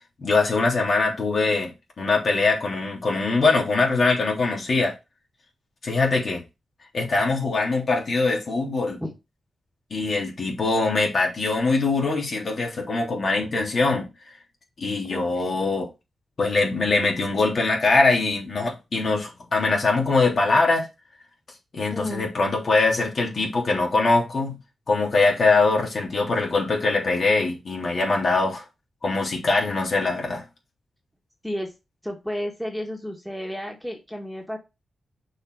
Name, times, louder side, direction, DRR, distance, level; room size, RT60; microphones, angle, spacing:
voice 1, 0.2-4.9 5.8-6.4 6.9-9.0 9.9-14.1 14.8-15.9 16.4-20.9 21.7-24.6 24.9-28.6 29.0-30.4, left 3 dB, 50° left, 3.3 m, -22 dB
voice 2, 15.1-15.5 21.9-22.3 31.4-31.7 32.0-34.6, equal, ahead, 2.0 m, -32 dB
6.5 x 5.0 x 4.8 m
wide cardioid pair, 105°, 0 cm